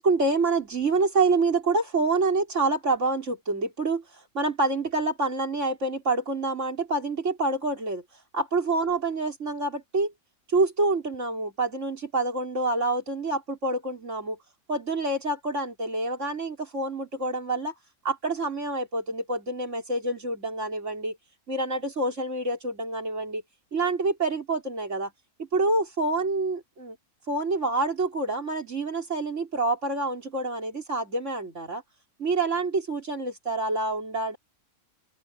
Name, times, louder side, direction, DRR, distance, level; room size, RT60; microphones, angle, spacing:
voice 1, 0.0-8.0 8.3-10.1 10.5-14.4 14.7-17.7 18.0-21.2 21.5-23.4 23.7-25.1 25.4-27.0 27.3-31.8 32.2-34.4, right 3 dB, 55° right, 4.7 m, -27 dB
omnidirectional pair, 1.6 m